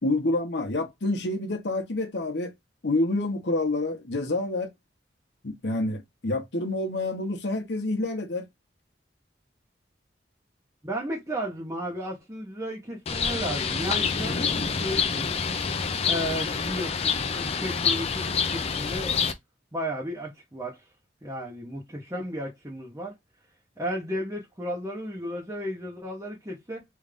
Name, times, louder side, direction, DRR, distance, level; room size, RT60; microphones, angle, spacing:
voice 1, 0.0-2.5 2.8-4.7 5.4-8.5, left 2 dB, 75° left, 1.1 m, -28 dB
voice 2, 10.8-15.4 16.1-19.3 19.7-20.8 21.2-23.1 23.8-26.8, equal, 15° right, 0.9 m, -34 dB
Bird, 13.1-19.3, left 6 dB, 35° left, 0.5 m, -27 dB
3.3 x 2.6 x 3.5 m
head